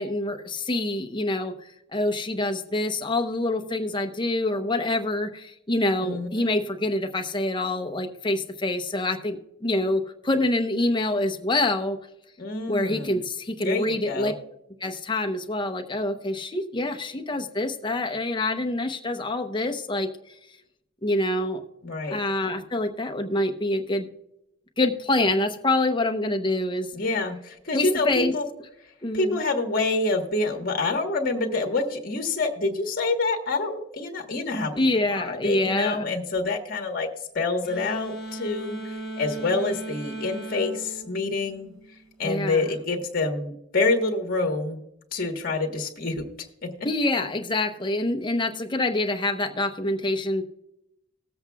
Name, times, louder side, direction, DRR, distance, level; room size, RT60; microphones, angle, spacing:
voice 1, 0.0-12.0 12.7-14.3 14.8-20.4 21.0-21.6 22.1-24.1 24.8-26.9 27.7-28.3 29.0-29.4 34.7-36.1 42.2-42.7 46.8-50.4, left 2 dB, 25° left, 5 dB, 0.8 m, -26 dB
voice 2, 6.0-6.5 12.4-13.2 13.6-14.3 21.8-22.2 26.9-28.5 29.1-34.7 35.1-37.1 37.3-41.7 42.2-44.8 45.1-46.2 46.6-46.7, left 3 dB, 45° left, 3 dB, 1.3 m, -27 dB
sound 1, 37.6-42.1, right 2 dB, ahead, 1.8 m, -37 dB
19.5 x 7.8 x 2.3 m, 0.81 s
head